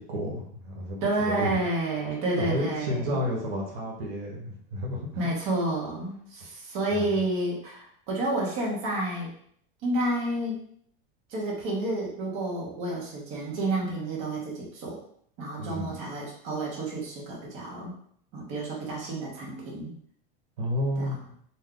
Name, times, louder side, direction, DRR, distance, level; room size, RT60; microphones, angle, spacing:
voice 1, 0.0-1.5 2.4-5.3 6.4-6.5 6.9-7.1 15.6-15.9 20.6-21.2, equal, 85° right, -2 dB, 1.1 m, -31 dB
voice 2, 1.0-3.2 5.2-9.3 9.8-10.6 11.3-15.0 15.4-17.9 18.3-19.9 21.0-21.1, right 2 dB, 45° right, -4 dB, 1.0 m, -30 dB
2.6 x 2.3 x 3.6 m, 0.64 s
supercardioid pair, 155°, 30 cm